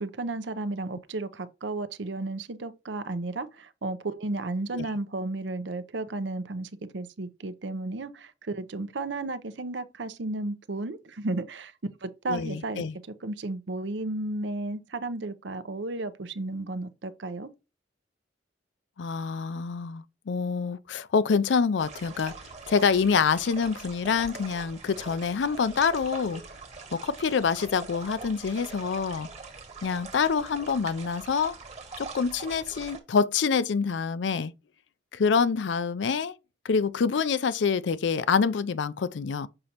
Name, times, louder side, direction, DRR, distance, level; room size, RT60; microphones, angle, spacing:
voice 1, 0.0-11.7 12.0-17.5, right 2 dB, 70° right, 0.7 m, -33 dB
voice 2, 12.3-12.9 19.0-22.4 22.7-26.4 26.9-29.3 29.8-31.6 32.0-34.5 35.1-36.3 36.6-39.5, left 5 dB, 75° left, 0.4 m, -26 dB
sound 1, 21.8-33.0, right 4 dB, 35° right, 1.5 m, -43 dB
6.7 x 5.2 x 2.9 m
head